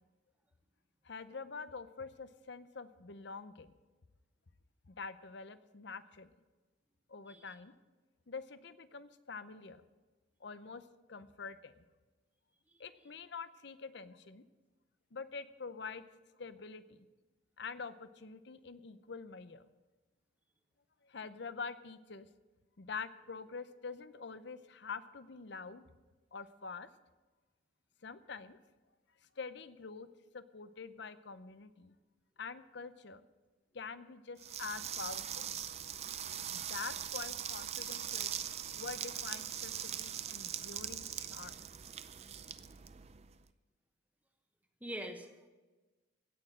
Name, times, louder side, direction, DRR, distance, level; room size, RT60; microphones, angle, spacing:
voice 1, 1.0-3.7 4.9-6.3 7.1-7.7 8.3-9.8 10.4-10.8 11.1-11.8 12.8-14.4 15.1-16.0 16.4-17.1 17.6-19.7 21.0-22.3 22.8-25.8 26.3-26.9 28.0-28.6 29.4-30.1 30.3-32.0 32.4-33.2 33.7-35.5 36.5-38.3 38.7-41.6, left 5 dB, 60° left, 13 dB, 0.7 m, -46 dB
sound 1, 34.4-43.4, right 9 dB, 35° right, 0.5 m, -41 dB
voice 2, 44.8-45.5, right 1 dB, 10° right, 4 dB, 1.2 m, -44 dB
16.0 x 6.5 x 7.7 m, 1.2 s
head